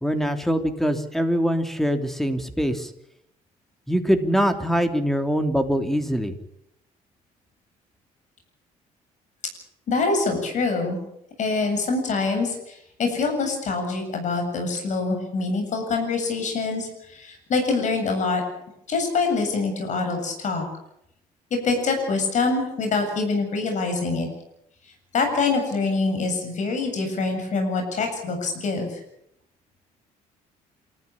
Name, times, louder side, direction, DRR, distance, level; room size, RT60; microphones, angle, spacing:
voice 1, 0.0-2.9 3.9-6.3, equal, ahead, 7 dB, 3.2 m, -23 dB
voice 2, 9.9-11.0 11.4-18.4 18.9-20.7 21.6-24.3 25.1-29.0, left 3 dB, 55° left, 4 dB, 7.9 m, -25 dB
28.0 x 15.0 x 8.7 m, 0.77 s
cardioid pair, 95°, 15 cm